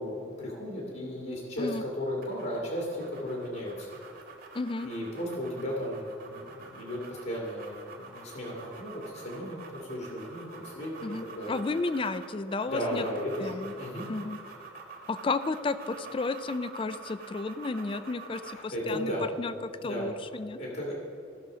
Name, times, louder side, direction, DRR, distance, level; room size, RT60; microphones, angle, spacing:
voice 1, 0.0-4.0 4.8-11.6 12.7-14.1 18.4-19.3 19.8-20.1 20.6-20.9, equal, 60° left, -2 dB, 1.9 m, -35 dB
sound 1, 2.2-18.7, right 4 dB, 45° right, 1.4 m, -47 dB
voice 2, 4.5-4.9 11.0-13.0 13.4-13.7 14.1-14.4 15.1-19.1 19.4-19.5 19.8-20.6, left 3 dB, 25° left, 13 dB, 0.3 m, -32 dB
15.5 x 6.3 x 4.9 m, 2.8 s
head